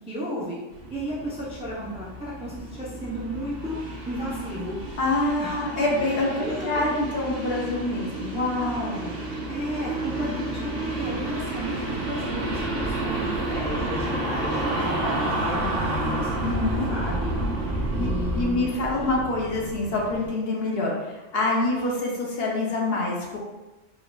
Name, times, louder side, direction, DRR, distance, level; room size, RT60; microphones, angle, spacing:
voice 1, 0.1-0.6 0.9-3.8 4.1-4.8 5.4-5.7 6.4-6.8 9.5-16.3 16.9-17.3 17.9-19.1, equal, 10° right, -6 dB, 0.3 m, -33 dB
sound 1, 0.7-20.3, right 2 dB, 70° right, 1.0 m, -30 dB
voice 2, 5.0-9.2 10.3-10.4 16.4-16.9 18.0-18.1 18.3-23.4, left 2 dB, 60° left, -3 dB, 0.8 m, -26 dB
4.6 x 2.4 x 2.2 m, 1.1 s
omnidirectional pair, 1.3 m